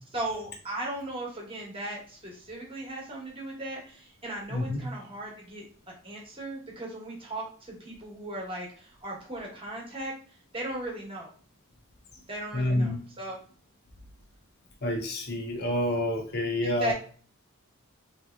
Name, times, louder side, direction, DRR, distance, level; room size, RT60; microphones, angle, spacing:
voice 1, 0.1-10.1 10.5-11.3 12.3-13.4 16.6-16.9, right 1 dB, 25° right, -2 dB, 1.1 m, -37 dB
voice 2, 12.5-13.0 14.8-16.9, left 1 dB, 45° left, 0 dB, 0.7 m, -28 dB
3.4 x 2.9 x 2.3 m, 0.43 s
head